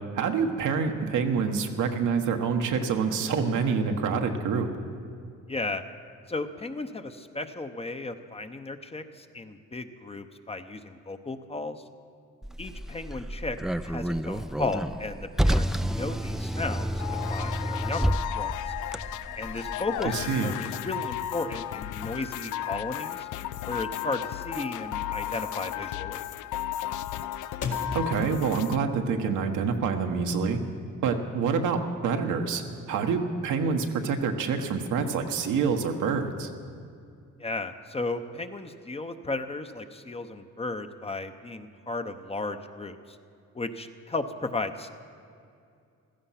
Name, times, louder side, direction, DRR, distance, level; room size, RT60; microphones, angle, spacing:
voice 1, 0.1-4.7 20.0-20.5 27.9-30.6 31.0-32.6 32.9-36.5, right 5 dB, 80° right, 4 dB, 1.3 m, -27 dB
voice 2, 5.5-5.8 6.3-11.8 12.6-13.6 13.8-18.7 19.4-23.3 23.7-26.3 37.4-43.2 43.5-44.9, left 3 dB, 20° left, 8 dB, 0.8 m, -35 dB
Car, 12.4-20.1, equal, ahead, 0.4 m, -30 dB
sound 1, 17.0-28.8, left 13 dB, 85° left, 0.5 m, -34 dB
sound 2, 22.6-29.6, left 4 dB, 65° left, 1.9 m, -42 dB
15.5 x 14.0 x 5.8 m, 2.4 s
cardioid pair, 90°, 30 cm